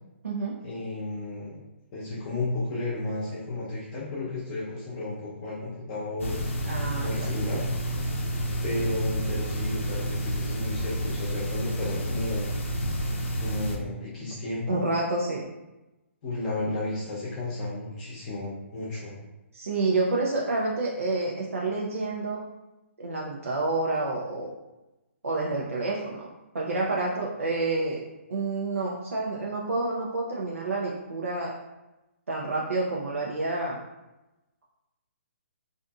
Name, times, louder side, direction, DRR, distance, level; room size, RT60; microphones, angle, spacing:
voice 1, 0.6-1.6 1.9-6.4 7.0-7.7 8.6-12.5 13.4-14.8 16.2-19.1, left 2 dB, 35° left, -7 dB, 0.7 m, -33 dB
sound 1, 6.2-13.8, equal, 70° left, 0.5 m, -30 dB
voice 2, 6.7-7.3 14.7-15.5 19.5-22.4 23.0-24.5 25.2-26.3 26.5-28.0 28.3-31.5 32.3-33.8, right 2 dB, 90° right, -4 dB, 0.5 m, -28 dB
2.5 x 2.5 x 2.3 m, 1.0 s
hypercardioid pair, 145°, 7 cm